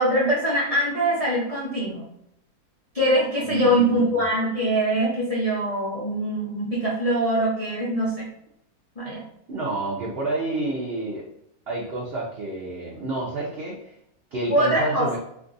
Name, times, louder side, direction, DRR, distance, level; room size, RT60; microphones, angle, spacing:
voice 1, 0.0-2.0 2.9-8.3 9.0-9.2 14.5-15.1, right 1 dB, 55° left, -6 dB, 0.4 m, -23 dB
voice 2, 3.4-4.2 9.5-11.3 11.7-13.9 14.3-15.2, right 2 dB, 60° right, -4 dB, 0.6 m, -29 dB
2.6 x 2.4 x 3.8 m, 0.75 s
omnidirectional pair, 1.6 m